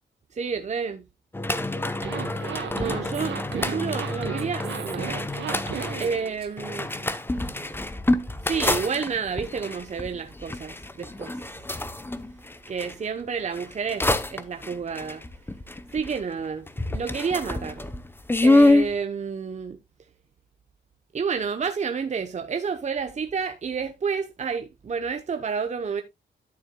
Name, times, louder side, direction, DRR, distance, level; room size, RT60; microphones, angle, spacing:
voice 1, 0.3-1.0 2.7-5.3 6.0-6.9 8.4-11.4 12.7-15.2 15.9-17.8 18.4-19.8 21.1-26.0, right 6 dB, 40° right, 0.8 m, -30 dB
sound 1, 1.3-12.9 13.5-16.4 16.7-18.9, left 2 dB, 10° left, 0.7 m, -26 dB
Zipper (clothing), 1.9-6.2, right 8 dB, 80° right, 1.3 m, -34 dB
Female speech woman speaking, 2.3-5.7 6.0-7.8, right 7 dB, 60° right, 1.3 m, -48 dB
12.5 x 7.0 x 2.2 m
cardioid pair, 95°, 19 cm